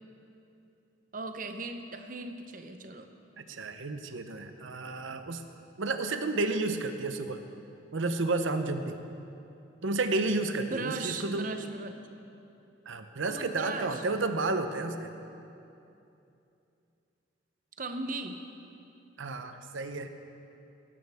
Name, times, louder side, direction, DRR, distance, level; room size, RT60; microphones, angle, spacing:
voice 1, 1.1-3.1 10.6-12.0 13.3-14.0 17.8-18.4, right 3 dB, 45° right, 7 dB, 0.7 m, -37 dB
voice 2, 3.4-5.4 5.8-7.4 7.9-9.0 9.8-11.5 12.9-15.1 19.2-20.1, right 3 dB, 85° right, 8 dB, 0.8 m, -31 dB
19.0 x 11.0 x 3.5 m, 2.7 s
head